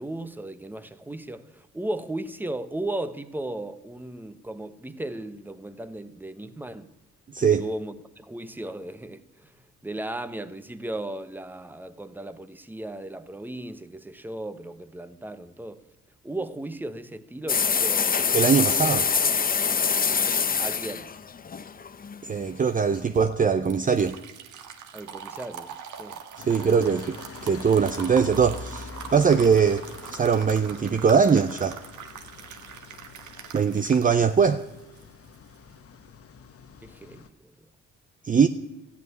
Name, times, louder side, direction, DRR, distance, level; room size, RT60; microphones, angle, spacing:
voice 1, 0.0-6.9 7.4-9.5 9.8-15.8 16.2-18.4 18.7-18.9 20.6-21.1 24.9-27.0 36.8-37.5, right 1 dB, 5° right, 0.9 m, -36 dB
voice 2, 7.3-7.6 18.3-19.1 22.2-24.2 26.4-27.2 27.4-31.8 33.5-34.6 38.2-38.5, right 6 dB, 25° right, 0.6 m, -21 dB
sound 1, 17.5-22.4, left 6 dB, 30° left, 0.7 m, -24 dB
sound 2, 22.9-35.7, right 7 dB, 75° right, 1.5 m, -42 dB
sound 3, 26.4-37.3, left 5 dB, 50° left, 1.1 m, -45 dB
13.5 x 8.4 x 9.5 m
cardioid pair, 90°, 30 cm